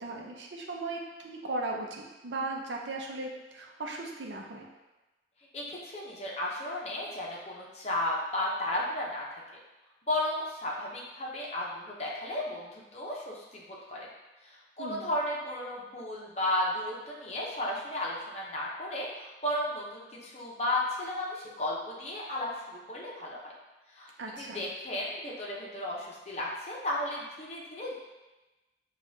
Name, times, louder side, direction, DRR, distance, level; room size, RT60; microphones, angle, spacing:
voice 1, 0.0-4.7 14.8-15.1 24.2-24.6, right 2 dB, 75° right, 0 dB, 0.6 m, -37 dB
voice 2, 5.5-9.3 10.1-14.1 14.4-23.5 23.9-24.1 24.4-27.9, left 1 dB, 35° left, -4 dB, 0.7 m, -34 dB
5.1 x 2.4 x 2.7 m, 1.1 s
head